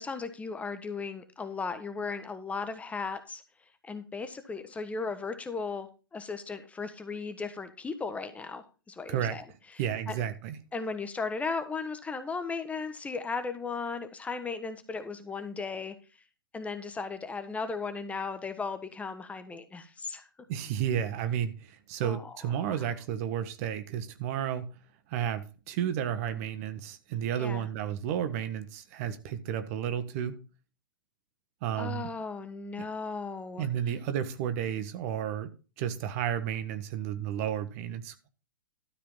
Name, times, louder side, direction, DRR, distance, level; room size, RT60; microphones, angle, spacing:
voice 1, 0.0-3.4 3.8-9.4 9.7-10.2 10.7-16.0 16.5-20.3 22.0-22.9 27.4-27.7 31.8-33.9, left 4 dB, 10° left, 10 dB, 1.2 m, -36 dB
voice 2, 9.8-10.5 20.5-24.7 25.1-30.4 31.6-32.1 33.6-35.5 35.8-38.3, right 9 dB, 45° right, 11 dB, 1.4 m, -32 dB
12.5 x 5.0 x 5.6 m, 0.32 s
figure-of-eight pair, 110°, 11 cm